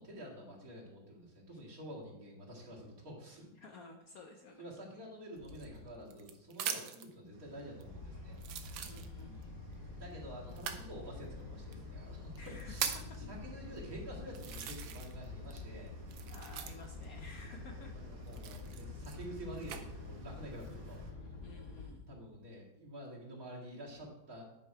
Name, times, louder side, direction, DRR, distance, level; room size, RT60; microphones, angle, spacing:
voice 1, 0.0-3.5 4.6-8.4 9.8-12.9 13.2-15.9 17.5-21.0 22.1-24.4, equal, 45° right, -4 dB, 2.6 m, -49 dB
voice 2, 3.5-4.6 8.8-9.5 12.3-13.0 16.3-18.0 21.4-22.1, left 3 dB, 65° left, 3 dB, 1.0 m, -53 dB
sound 1, 5.4-5.8 7.8-21.9, left 4 dB, 90° left, 2.3 m, -48 dB
sound 2, 5.4-7.1 7.8-7.9 8.4-9.4 10.5-10.9 11.7-11.8 12.4-13.2 13.8-13.9 14.3-15.2 15.5-17.0 18.3-19.8 20.5-21.0, right 8 dB, 90° right, 1.5 m, -41 dB
sound 3, 7.3-21.1, right 5 dB, 65° right, 2.0 m, -55 dB
9.9 x 5.3 x 4.5 m, 0.88 s
omnidirectional pair, 2.1 m